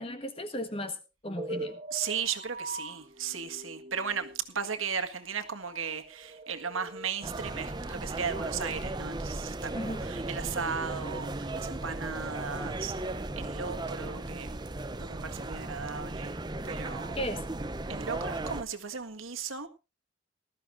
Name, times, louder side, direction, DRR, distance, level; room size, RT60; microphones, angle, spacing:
voice 1, 0.0-1.8 9.7-10.1 17.2-17.5, equal, 25° left, 1.5 m, -36 dB
sound 1, 1.4-11.7, right 1 dB, 35° right, 2.1 m, -45 dB
voice 2, 1.9-14.6 15.0-16.4 16.6-17.2 17.9-19.7, right 6 dB, 80° right, 1.7 m, -36 dB
sound 2, 7.2-18.6, right 2 dB, 20° right, 0.6 m, -36 dB
19.5 x 13.5 x 2.6 m
head